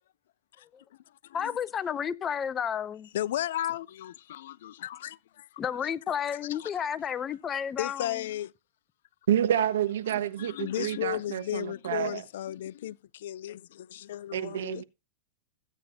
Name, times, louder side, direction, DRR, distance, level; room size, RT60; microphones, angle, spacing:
voice 1, 1.3-3.1 5.6-8.3, left 8 dB, 20° left, 0.5 m, -32 dB
voice 2, 3.1-5.5 6.3-6.7 7.8-8.5 10.1-14.8, left 13 dB, 70° left, 0.4 m, -35 dB
voice 3, 9.3-12.2 14.3-14.8, right 10 dB, 80° right, 1.2 m, -28 dB
14.5 x 9.0 x 2.8 m
supercardioid pair, 150°, 0 cm